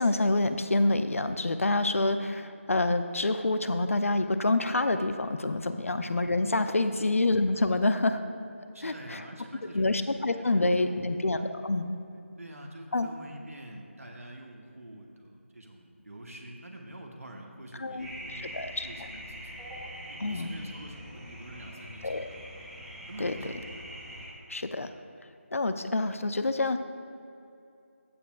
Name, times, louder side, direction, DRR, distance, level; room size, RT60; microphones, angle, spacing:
voice 1, 0.0-8.2 8.8-9.2 9.7-11.9 12.9-13.1 17.8-18.1 18.5-18.9 20.2-20.6 22.0-22.3 23.2-23.4 24.5-24.9 25.5-26.8, left 2 dB, 75° left, 10 dB, 0.6 m, -27 dB
voice 2, 8.7-10.0 10.4-11.2 12.4-22.5 23.1-23.9, right 1 dB, 85° right, 1 dB, 1.2 m, -46 dB
sound 1, 18.0-24.3, equal, ahead, 0.5 m, -43 dB
14.5 x 6.9 x 2.4 m, 2.6 s
figure-of-eight pair, 165°, 7 cm